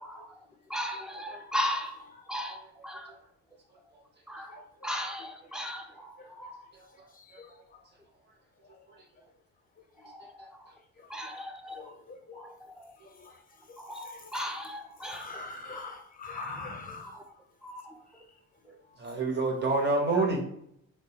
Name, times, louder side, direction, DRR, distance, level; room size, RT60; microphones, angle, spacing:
voice 1, 0.7-1.9 2.3-2.6 2.8-3.0 4.3-4.5 4.8-5.8 6.4-6.5 11.1-11.8 12.4-12.5 13.8-15.3 15.7-15.9 16.4-16.7 17.6-17.8, equal, ahead, 3 dB, 0.4 m, -35 dB
voice 2, 15.1-17.1, left 4 dB, 30° left, 4 dB, 0.7 m, -41 dB
voice 3, 19.0-20.4, right 3 dB, 35° right, 0 dB, 1.0 m, -27 dB
3.6 x 2.3 x 2.9 m, 0.73 s
cardioid pair, 90°, 30 cm